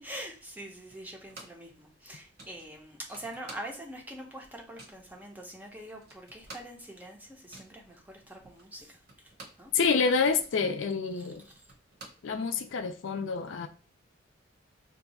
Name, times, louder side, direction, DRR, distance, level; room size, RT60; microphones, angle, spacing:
voice 1, 0.0-9.3 9.6-9.7 11.2-11.6, right 1 dB, 10° right, 0.6 m, -44 dB
sound 1, 0.9-1.7 2.0-2.1 2.4-4.1 4.3-5.1 5.6-5.7 5.9-9.7 10.0-12.8, right 2 dB, 50° right, 1.0 m, -51 dB
voice 2, 9.7-11.4 12.2-13.7, left 5 dB, 70° left, 0.4 m, -27 dB
2.6 x 2.3 x 4.0 m
head